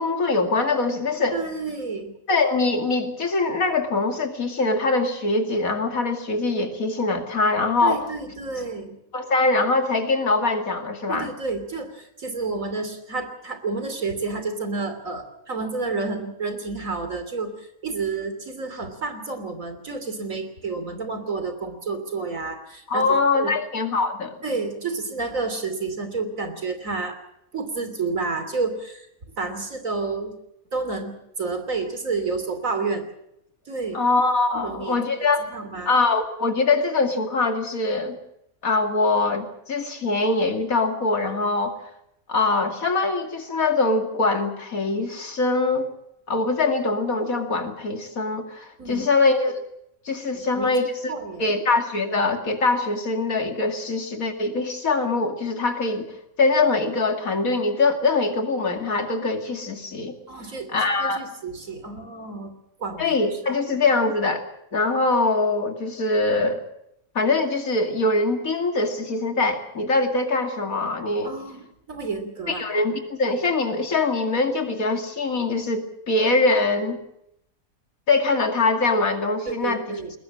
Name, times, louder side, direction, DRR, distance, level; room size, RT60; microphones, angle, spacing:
voice 1, 0.0-1.4 2.3-8.0 9.1-11.3 22.9-24.4 33.9-35.5 35.9-38.2 38.6-41.8 42.3-45.9 46.3-49.5 50.0-51.1 51.4-56.1 56.4-60.2 60.7-61.2 63.0-64.4 64.7-66.6 67.1-71.3 72.5-77.0 78.1-80.0, left 3 dB, 75° left, 5 dB, 2.8 m, -23 dB
voice 2, 1.3-2.1 7.8-8.9 11.1-23.0 23.3-23.5 24.4-27.2 27.5-29.1 29.4-30.3 30.7-33.1 33.7-34.0 34.6-35.9 48.8-49.0 50.3-50.7 51.1-51.5 60.3-60.7 61.0-62.5 62.8-63.2 71.2-72.6 79.5-80.1, right 4 dB, 65° right, 8 dB, 3.5 m, -30 dB
21.5 x 20.0 x 7.5 m, 0.78 s
omnidirectional pair, 1.5 m